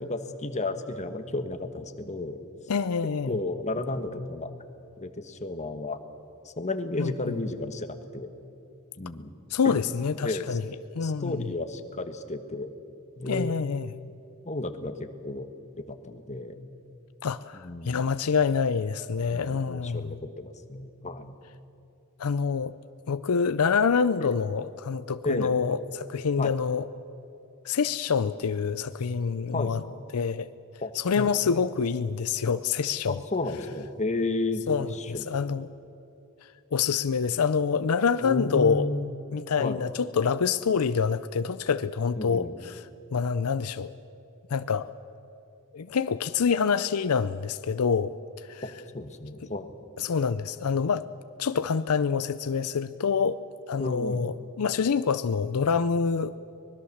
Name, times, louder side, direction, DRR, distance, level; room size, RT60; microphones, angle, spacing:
voice 1, 0.0-2.4 3.3-4.5 5.0-6.0 6.4-8.3 9.0-9.3 9.6-9.8 10.1-10.6 11.0-12.7 13.2-13.5 14.4-15.5 15.9-16.6 17.5-18.0 19.3-21.3 24.2-24.3 25.2-25.6 26.4-26.5 29.5-29.8 30.8-31.3 33.1-35.3 38.2-39.1 39.6-39.8 42.2-42.5 48.6-49.8 53.8-54.2, left 2 dB, 30° left, 8 dB, 1.3 m, -32 dB
voice 2, 2.7-3.4 7.0-7.4 9.5-10.6 10.9-11.5 13.2-13.9 17.2-20.2 22.2-22.7 23.1-26.9 27.6-29.8 30.1-30.5 30.9-33.2 34.7-35.7 36.7-38.9 39.3-42.8 43.1-43.9 44.5-44.9 45.7-48.6 50.0-51.0 51.4-53.4 53.7-56.4, left 6 dB, 80° left, 13 dB, 0.5 m, -26 dB
24.5 x 20.5 x 7.2 m, 2.8 s
head